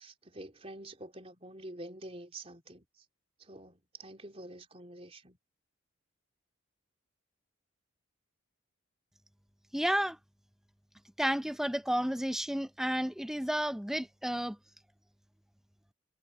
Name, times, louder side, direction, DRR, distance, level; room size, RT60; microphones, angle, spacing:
voice 1, 0.0-3.0 3.4-5.4, right 1 dB, 30° right, 3.6 m, -47 dB
voice 2, 9.7-10.2 11.2-14.6, equal, ahead, 0.4 m, -31 dB
head